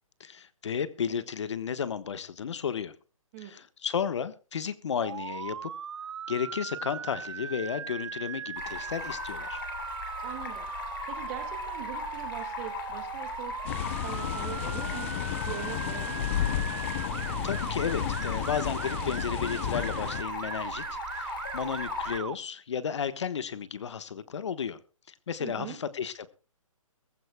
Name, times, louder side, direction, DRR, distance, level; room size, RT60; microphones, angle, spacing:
voice 1, 0.2-2.9 3.4-5.7 6.3-9.6 17.4-24.8 25.1-26.3, left 7 dB, 55° left, 13 dB, 1.3 m, -33 dB
voice 2, 3.3-3.6 10.2-10.7 11.1-13.5 14.0-15.1 15.5-16.8 25.4-25.8, right 12 dB, 20° right, 9 dB, 1.9 m, -42 dB
Motor vehicle (road) / Siren, 5.0-22.3, right 8 dB, 55° right, 0.7 m, -38 dB
Stream, 8.6-22.2, left 7 dB, 40° left, 3.0 m, -40 dB
sound 1, 13.6-20.2, left 11 dB, 20° left, 0.6 m, -33 dB
22.5 x 15.0 x 2.2 m, 0.32 s
hypercardioid pair, 160°, 18 cm